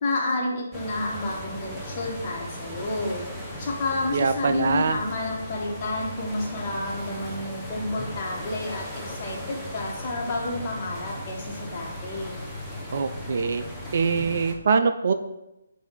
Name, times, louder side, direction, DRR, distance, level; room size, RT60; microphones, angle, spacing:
voice 1, 0.0-3.2 3.6-12.4, left 2 dB, 30° left, -2 dB, 1.4 m, -30 dB
sound 1, 0.7-14.5, left 1 dB, ahead, 0.8 m, -37 dB
voice 2, 4.1-5.0 12.9-13.6 13.9-15.1, right 5 dB, 50° right, 9 dB, 0.4 m, -23 dB
6.9 x 2.7 x 5.7 m, 0.93 s
figure-of-eight pair, 140°, 0 cm